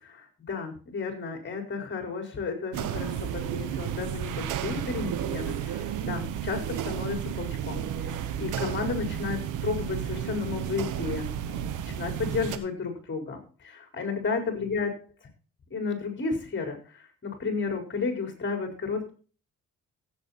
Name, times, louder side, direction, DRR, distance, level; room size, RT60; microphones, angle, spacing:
voice 1, 0.0-14.9 15.7-19.1, left 4 dB, 40° left, 4 dB, 4.9 m, -33 dB
sound 1, 2.7-12.6, right 9 dB, 85° right, 1.3 m, -32 dB
15.5 x 8.3 x 4.3 m, 0.39 s
cardioid pair, 90°, 30 cm